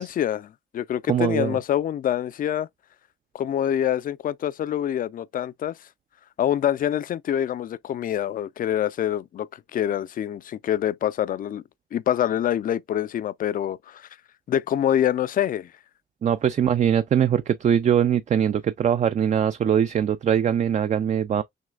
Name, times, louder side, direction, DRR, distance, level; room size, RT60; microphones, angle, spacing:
voice 1, 0.0-2.7 3.3-5.7 6.4-11.6 11.9-14.1 14.5-15.7, left 10 dB, 45° left, 0.4 m, -25 dB
voice 2, 1.1-1.6 16.2-21.4, right 8 dB, 35° right, 0.4 m, -22 dB
6.3 x 2.2 x 2.4 m
cardioid pair, 90°, 20 cm